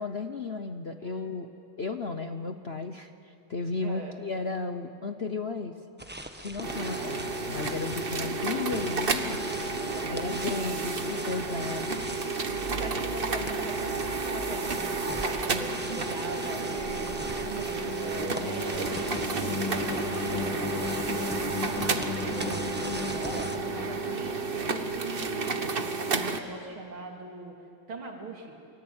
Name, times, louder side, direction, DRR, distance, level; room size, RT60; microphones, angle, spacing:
voice 1, 0.0-5.7 6.4-9.4 10.1-12.0, left 4 dB, 45° left, 7 dB, 0.8 m, -34 dB
voice 2, 1.0-1.3 3.8-4.1 9.9-10.7 12.7-27.6 27.9-28.6, right 3 dB, 85° right, 1 dB, 4.0 m, -41 dB
sound 1, 6.0-23.6, right 1 dB, 5° right, 0.9 m, -41 dB
sound 2, 6.6-26.4, right 3 dB, 35° right, 1.2 m, -31 dB
sound 3, 16.5-25.2, left 3 dB, 90° left, 3.2 m, -36 dB
29.0 x 23.5 x 8.9 m, 2.7 s
omnidirectional pair, 2.2 m